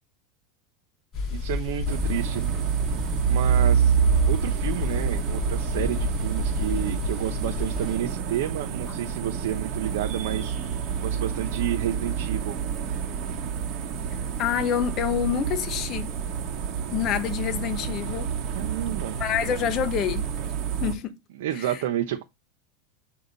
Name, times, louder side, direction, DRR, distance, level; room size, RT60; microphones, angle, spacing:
sound 1, 1.1-8.0, left 4 dB, 20° left, 5.1 m, -31 dB
voice 1, 1.3-2.4 3.3-4.0 4.3-12.6 18.5-19.2 21.3-22.2, right 11 dB, 75° right, 0.8 m, -30 dB
sound 2, 1.9-20.9, right 8 dB, 40° right, 1.1 m, -28 dB
voice 2, 14.4-16.1 16.9-18.3 19.2-20.3 20.8-21.1 21.6-21.8, left 9 dB, 35° left, 0.8 m, -27 dB
6.9 x 2.8 x 5.2 m
supercardioid pair, 150°, 0 cm